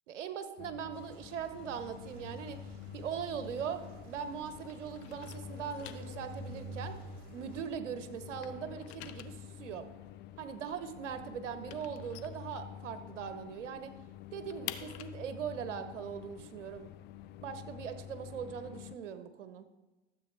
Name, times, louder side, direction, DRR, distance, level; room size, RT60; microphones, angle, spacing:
voice 1, 0.1-2.6 2.9-7.0 7.3-9.9 10.4-13.9 14.3-16.9 17.4-19.7, right 7 dB, 80° right, 10 dB, 1.1 m, -40 dB
sound 1, 0.6-19.0, left 11 dB, 30° left, 0.3 m, -49 dB
sound 2, 0.9-7.6, right 5 dB, 60° right, 2.3 m, -51 dB
sound 3, 2.9-4.4 4.6-7.9 8.2-13.2 13.5-13.6 13.9-17.6, left 14 dB, 60° left, 0.8 m, -49 dB
13.0 x 7.8 x 3.4 m, 1.1 s
hypercardioid pair, 90°, 36 cm